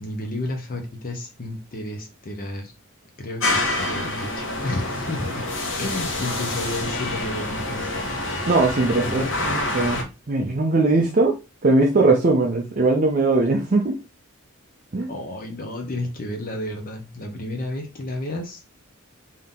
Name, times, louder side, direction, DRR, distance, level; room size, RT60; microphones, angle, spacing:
voice 1, 0.0-2.7 3.2-5.4 5.8-8.2 8.9-9.3 15.1-18.6, left 1 dB, 40° left, 0.7 m, -31 dB
sound 1, 3.4-10.0, left 2 dB, 65° left, 0.9 m, -27 dB
voice 2, 8.5-14.0 14.9-15.1, right 2 dB, 40° right, 0.5 m, -20 dB
3.7 x 2.8 x 3.6 m
head